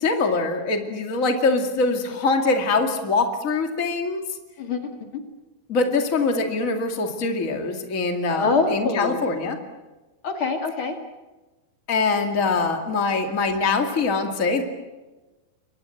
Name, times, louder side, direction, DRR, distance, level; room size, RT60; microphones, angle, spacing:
voice 1, 0.0-4.2 5.7-9.6 11.9-14.6, left 3 dB, 70° left, 5 dB, 0.7 m, -23 dB
voice 2, 4.6-4.9 8.3-9.3 10.2-11.0, left 4 dB, 45° left, 5 dB, 1.8 m, -24 dB
29.5 x 24.5 x 7.8 m, 1.2 s
omnidirectional pair, 5.7 m